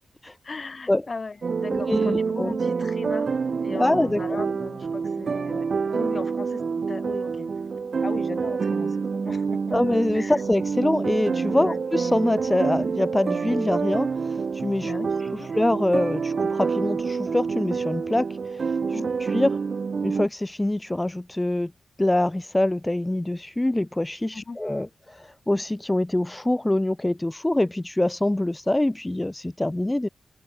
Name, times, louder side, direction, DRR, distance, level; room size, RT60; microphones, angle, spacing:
voice 1, 0.4-3.3 3.6-7.5 8.0-9.8 10.1-10.4 11.6-11.8 14.8-15.5 18.9-19.1 24.3-24.6, left 4 dB, 35° left, 7.6 m, -37 dB
sound 1, 1.4-20.3, right 5 dB, 50° right, 5.9 m, -27 dB
voice 2, 1.7-2.6 3.7-4.2 9.7-14.9 15.5-18.6 18.9-19.0 19.3-19.6 20.0-21.7 22.0-30.1, left 1 dB, 10° left, 4.6 m, -24 dB
wide cardioid pair, 120°, 0 cm